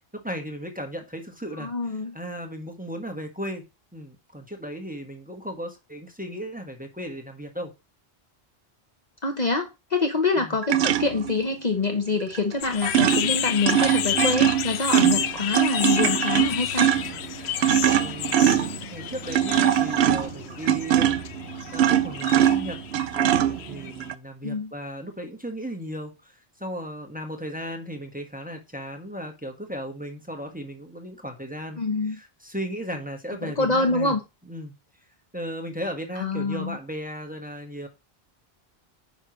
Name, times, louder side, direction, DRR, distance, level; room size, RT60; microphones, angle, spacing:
voice 1, 0.2-1.7 2.1-3.6 3.9-7.7 10.4-10.6 18.0-21.2 21.7-22.8 23.1-26.3 26.6-31.8 32.1-34.1 34.5-34.7 35.3-37.9, equal, 10° right, 1.4 m, -35 dB
voice 2, 1.6-2.2 9.2-16.9 24.4-24.7 31.8-32.2 33.4-34.2 36.2-36.8, left 3 dB, 45° left, 1.0 m, -26 dB
sound 1, 10.6-11.3 12.3-12.5 12.8-24.1, right 10 dB, 80° right, 0.8 m, -22 dB
sound 2, 12.6-24.0, left 10 dB, 90° left, 0.8 m, -31 dB
9.5 x 5.6 x 3.1 m
omnidirectional pair, 1.1 m